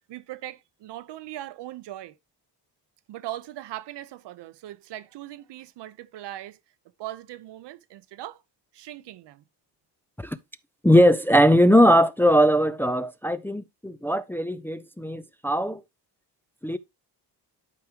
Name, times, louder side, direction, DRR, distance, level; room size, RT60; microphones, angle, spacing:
voice 1, 0.1-2.2 3.1-6.6 7.0-8.4 8.7-9.4, right 14 dB, 75° right, 0.8 m, -39 dB
voice 2, 10.8-15.8 16.6-16.8, equal, 5° left, 0.4 m, -20 dB
11.5 x 4.8 x 2.9 m
cardioid pair, 115°, 41 cm